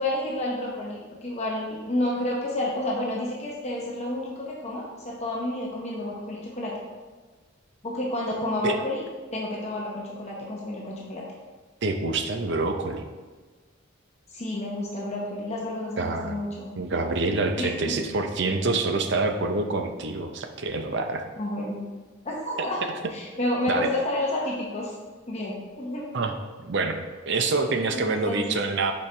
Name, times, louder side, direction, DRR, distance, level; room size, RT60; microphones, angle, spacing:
voice 1, 0.0-6.7 7.8-9.0 9.3-11.2 14.3-16.7 17.6-18.0 21.4-21.7 22.2-22.8 23.1-24.9 25.3-26.0 27.9-28.4, left 1 dB, 30° left, -3 dB, 0.9 m, -30 dB
voice 2, 11.8-13.0 16.0-16.4 16.8-21.3 22.6-22.7 23.7-23.9 26.1-26.3 26.6-27.0 27.3-28.9, right 3 dB, 60° right, 5 dB, 0.6 m, -26 dB
8.3 x 5.2 x 3.3 m, 1.3 s
head